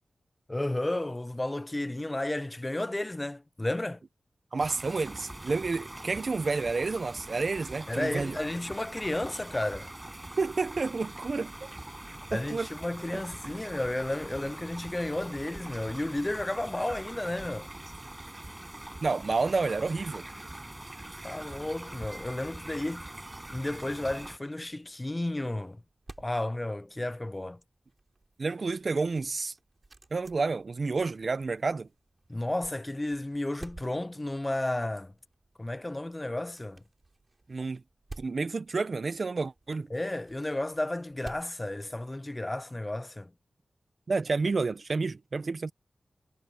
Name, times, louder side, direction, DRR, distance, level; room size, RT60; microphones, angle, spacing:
voice 1, 0.5-4.0 7.9-9.9 12.3-17.7 21.2-23.1 23.5-25.8 26.2-27.6 32.3-35.1 35.6-36.8 39.9-43.3, left 1 dB, 20° left, 0.4 m, -32 dB
voice 2, 4.5-8.4 10.4-11.7 12.3-12.7 13.1-13.5 19.0-20.2 28.4-29.5 30.1-31.9 37.5-37.8 38.2-39.9 44.1-45.7, right 4 dB, 60° right, 0.9 m, -30 dB
sound 1, 4.6-24.4, right 1 dB, 20° right, 6.2 m, -43 dB
sound 2, 24.8-42.5, right 2 dB, 40° right, 4.4 m, -54 dB
cardioid pair, 60°, 0 cm